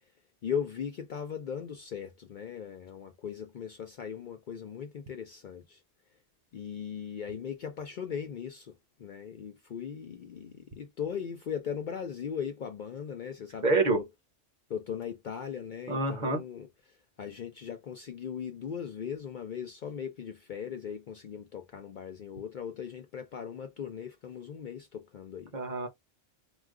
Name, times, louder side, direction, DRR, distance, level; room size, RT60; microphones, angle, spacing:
voice 1, 0.4-5.8 6.5-8.7 9.0-14.0 14.7-16.7 17.2-25.5, left 7 dB, 55° left, 0.6 m, -38 dB
voice 2, 13.6-14.0 15.9-16.4 25.5-25.9, right 3 dB, 45° right, 0.8 m, -27 dB
2.3 x 2.3 x 3.5 m
omnidirectional pair, 1.1 m